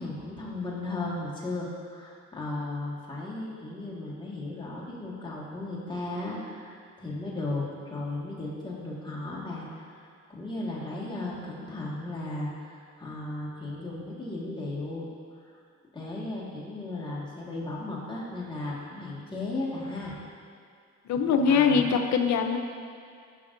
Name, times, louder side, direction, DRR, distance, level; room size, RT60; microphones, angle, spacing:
voice 1, 0.0-10.0 10.3-15.1 15.9-20.2 21.5-21.9, left 2 dB, 15° left, -6 dB, 1.8 m, -35 dB
voice 2, 21.1-22.6, left 6 dB, 65° left, 5 dB, 0.7 m, -22 dB
10.5 x 6.0 x 2.7 m, 2.3 s
cardioid pair, 90°, 30 cm